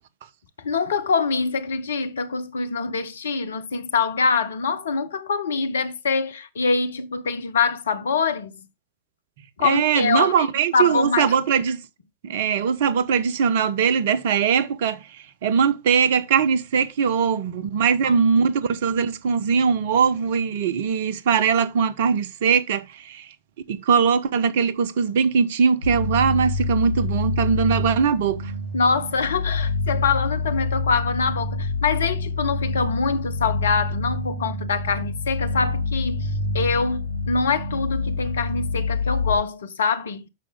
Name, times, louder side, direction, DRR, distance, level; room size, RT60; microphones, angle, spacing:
voice 1, 0.6-8.5 9.6-10.5 10.7-11.4 18.0-18.2 28.7-36.3 36.5-40.2, left 5 dB, 65° left, 0.9 m, -24 dB
voice 2, 9.6-11.8 12.2-23.3 23.7-28.5, right 6 dB, 55° right, 0.8 m, -21 dB
sound 1, 25.8-39.4, left 3 dB, 80° right, 2.6 m, -27 dB
8.7 x 6.2 x 3.6 m
figure-of-eight pair, 90°, 0 cm